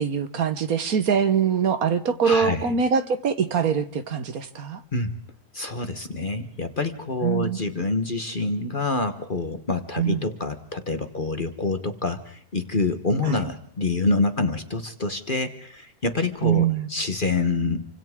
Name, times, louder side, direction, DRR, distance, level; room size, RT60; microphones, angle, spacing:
voice 1, 0.0-4.8 7.2-7.6 10.0-10.2 13.3-13.4 16.4-16.9, right 7 dB, 60° right, 11 dB, 1.5 m, -23 dB
voice 2, 2.2-2.7 4.9-5.1 5.5-17.9, left 3 dB, 35° left, 9 dB, 1.2 m, -26 dB
28.5 x 25.0 x 3.7 m, 0.63 s
omnidirectional pair, 1.7 m